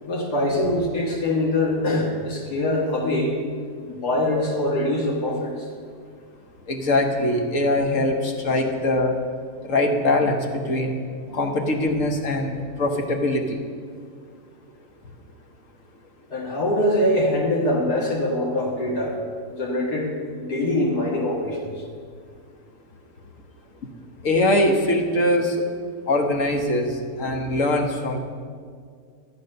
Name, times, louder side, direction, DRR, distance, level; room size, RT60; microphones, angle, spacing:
voice 1, 0.0-3.4 3.9-5.6 16.3-19.2 19.6-21.8, left 1 dB, 70° left, -4 dB, 2.3 m, -23 dB
voice 2, 6.7-9.1 9.6-11.0 11.3-13.6 24.2-25.6 26.1-28.2, left 1 dB, 50° left, 2 dB, 1.6 m, -22 dB
13.5 x 8.8 x 6.6 m, 2.1 s
omnidirectional pair, 1.8 m